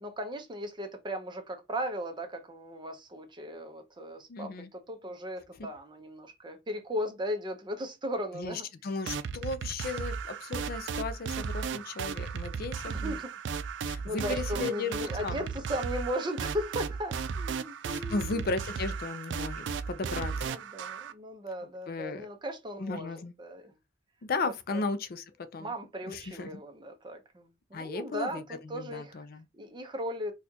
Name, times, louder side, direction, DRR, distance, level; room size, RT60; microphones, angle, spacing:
voice 1, 0.0-8.7 12.9-13.3 14.0-18.4 20.4-23.7 24.4-24.8 25.6-29.2 29.5-30.3, equal, 25° right, 0.7 m, -37 dB
voice 2, 4.3-4.7 8.3-13.2 13.8-15.4 17.9-20.3 21.9-22.3 22.8-23.3 24.2-25.7 26.1-26.6 27.7-29.5, left 3 dB, 55° left, 0.4 m, -35 dB
sound 1, 9.1-21.1, right 5 dB, 75° right, 0.4 m, -35 dB
4.2 x 2.3 x 2.8 m
head